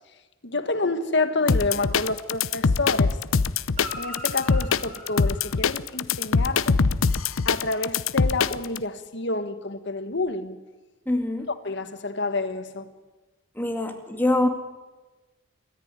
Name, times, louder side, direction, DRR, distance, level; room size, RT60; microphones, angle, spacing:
voice 1, 0.4-3.2 4.0-6.8 7.4-10.6 11.6-12.9, left 3 dB, 55° left, 10 dB, 1.7 m, -28 dB
sound 1, 1.5-8.8, left 5 dB, 75° left, 0.7 m, -23 dB
Guitar, 3.7-6.3 10.1-10.2, equal, 30° right, 5.6 m, -41 dB
voice 2, 11.1-11.5 13.6-14.5, left 1 dB, 10° left, 4 dB, 2.0 m, -24 dB
26.0 x 14.5 x 9.9 m, 1.2 s
head